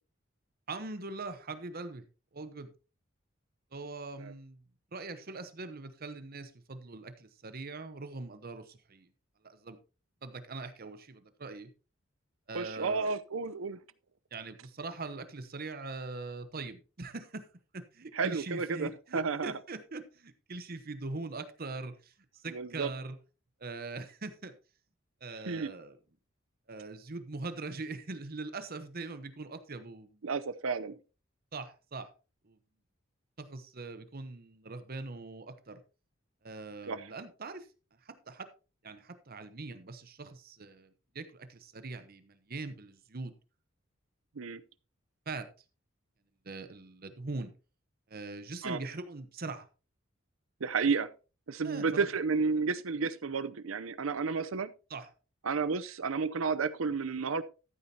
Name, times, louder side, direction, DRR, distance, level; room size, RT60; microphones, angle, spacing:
voice 1, 0.7-2.0 2.3-2.7 3.7-4.6 4.9-9.1 9.4-9.8 10.2-11.7 12.5-13.1 14.3-17.5 17.7-23.2 23.6-24.5 25.2-26.0 26.7-30.2 31.5-32.1 32.4-32.6 33.4-35.8 36.4-37.7 38.0-38.5 38.8-43.3 45.3-45.5 46.4-47.5 48.1-49.7 51.6-52.1 54.9-55.1, right 3 dB, 50° right, 1.0 m, -42 dB
voice 2, 12.5-13.8 18.1-19.5 22.5-22.9 25.5-25.7 30.2-31.0 36.9-37.1 44.4-44.6 48.6-48.8 50.6-51.1 51.5-54.7 55.4-57.4, right 4 dB, 85° right, 0.7 m, -32 dB
13.5 x 8.7 x 2.8 m
head